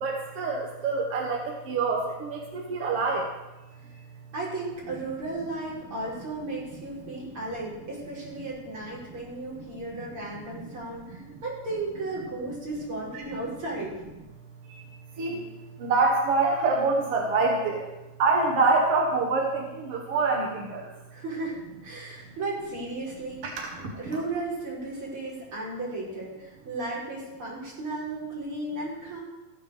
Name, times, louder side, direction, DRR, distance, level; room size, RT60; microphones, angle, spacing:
voice 1, 0.0-3.3 6.9-7.1 9.5-9.6 9.9-10.0 10.3-10.8 11.1-11.4 13.1-13.2 14.7-14.8 15.2-15.5 15.8-17.9 18.2-20.9 23.4-24.2, right 3 dB, 55° right, 0 dB, 1.6 m, -26 dB
voice 2, 4.3-14.0 21.1-21.6 21.8-23.4 24.0-29.2, right 2 dB, 30° right, -6 dB, 6.0 m, -35 dB
14.5 x 9.3 x 6.7 m, 1.1 s
omnidirectional pair, 4.8 m